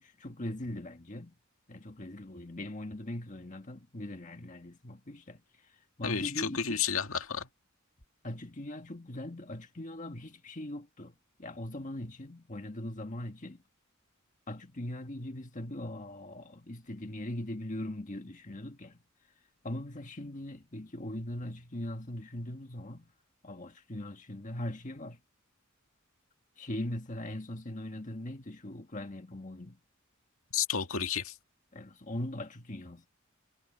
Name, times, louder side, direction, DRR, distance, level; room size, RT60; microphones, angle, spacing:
voice 1, 0.0-1.3 1.7-6.8 8.2-13.6 14.5-19.0 19.6-23.1 23.4-25.2 26.6-29.8 31.7-33.1, left 1 dB, 40° left, 1.7 m, -40 dB
voice 2, 6.0-7.5 30.5-31.4, left 7 dB, 85° left, 2.1 m, -31 dB
head